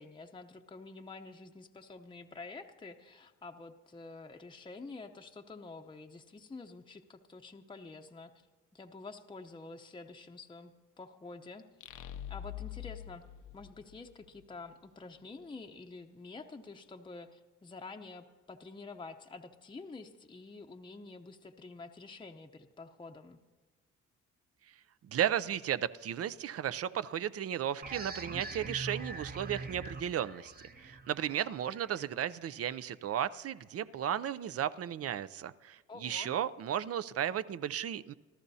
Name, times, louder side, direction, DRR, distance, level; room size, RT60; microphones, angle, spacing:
voice 1, 0.0-8.3 8.7-11.7 12.3-13.2 13.5-23.4 31.2-31.5 35.9-36.3, left 3 dB, 15° left, 3 dB, 0.7 m, -48 dB
sound 1, 11.8-14.4, left 11 dB, 80° left, 0.7 m, -44 dB
voice 2, 25.1-30.5 30.8-38.1, right 10 dB, 50° right, 15 dB, 0.5 m, -34 dB
sound 2, 27.8-33.1, right 3 dB, 30° right, 1.0 m, -44 dB
26.0 x 14.0 x 2.8 m, 1.4 s
cardioid pair, 90°, 30 cm